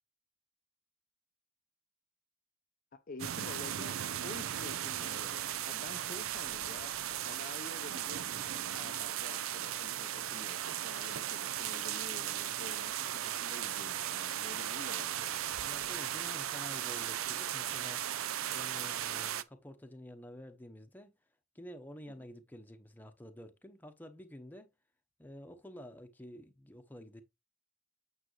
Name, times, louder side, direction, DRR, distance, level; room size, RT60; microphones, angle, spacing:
voice 1, 2.9-15.4 22.1-22.3, left 3 dB, 40° left, 0.5 m, -49 dB
sound 1, 3.2-19.4, right 11 dB, 75° right, 0.5 m, -37 dB
voice 2, 15.6-18.0 18.5-21.2 21.5-24.7 25.2-27.2, equal, 10° left, 0.9 m, -50 dB
8.8 x 5.8 x 3.1 m
head